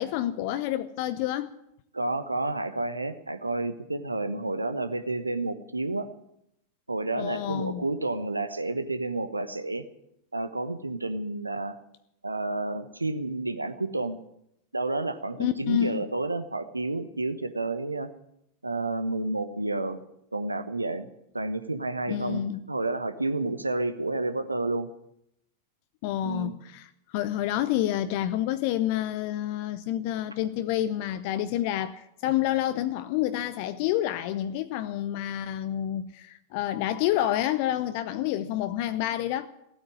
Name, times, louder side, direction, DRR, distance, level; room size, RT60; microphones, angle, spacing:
voice 1, 0.0-1.5 7.1-7.9 15.4-16.1 22.1-22.6 26.0-39.5, left 12 dB, 45° left, 0.7 m, -28 dB
voice 2, 1.9-6.1 6.9-9.8 10.3-11.7 12.2-14.2 14.7-18.1 18.6-20.0 20.3-21.1 21.3-22.4 22.7-24.9 26.2-26.6, right 2 dB, 80° right, 1.1 m, -30 dB
16.0 x 8.9 x 9.9 m
figure-of-eight pair, 90°, 0 cm